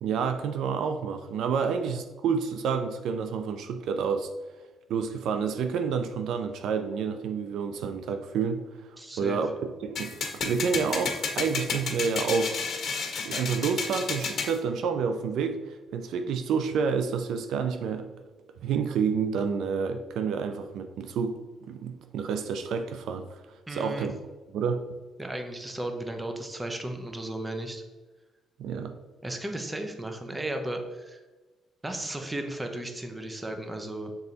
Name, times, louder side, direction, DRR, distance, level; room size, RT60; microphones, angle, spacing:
voice 1, 0.0-4.3 4.9-8.6 9.2-12.6 13.2-18.1 18.6-23.4 23.7-24.2 24.5-24.8 28.6-28.9, right 6 dB, 80° right, 7 dB, 0.5 m, -29 dB
voice 2, 9.0-9.4 23.7-24.1 25.2-27.8 29.2-31.2 31.8-34.1, right 1 dB, 15° right, 5 dB, 0.9 m, -35 dB
sound 1, 10.0-14.6, left 5 dB, 50° left, 1.6 m, -31 dB
6.9 x 3.9 x 4.1 m, 1.2 s
cardioid pair, 90°, 0 cm